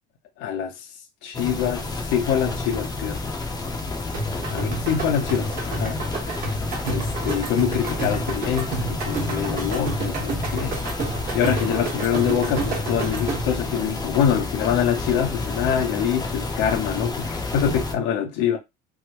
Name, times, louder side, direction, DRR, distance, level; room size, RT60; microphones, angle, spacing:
voice 1, 0.4-0.7 1.2-3.2 4.5-6.1 6.8-10.8 11.3-18.6, left 8 dB, 70° left, 0.9 m, -25 dB
sound 1, 1.3-18.0, left 3 dB, 20° left, 0.7 m, -30 dB
sound 2, 4.1-13.6, right 3 dB, 45° right, 1.3 m, -30 dB
3.5 x 2.1 x 2.9 m
cardioid pair, 125°, 20 cm